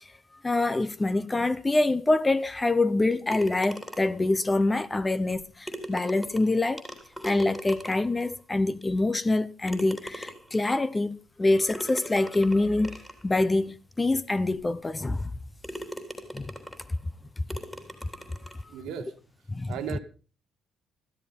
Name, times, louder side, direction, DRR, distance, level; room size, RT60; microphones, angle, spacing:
voice 1, 0.4-6.8 7.2-15.3 16.3-16.4 17.5-17.6 19.5-20.0, left 2 dB, 20° left, 0.8 m, -25 dB
sound 1, 3.3-4.3 5.3-5.4 5.7-8.2 8.8-8.9 9.7-10.6 11.7-13.2 13.9-14.0 14.5-14.6 15.2-15.3 15.6-16.9 17.5-18.6, equal, 5° left, 3.4 m, -40 dB
voice 2, 18.7-19.1 19.7-20.0, right 8 dB, 80° right, 1.8 m, -35 dB
13.5 x 12.5 x 5.3 m
supercardioid pair, 80°, 0 cm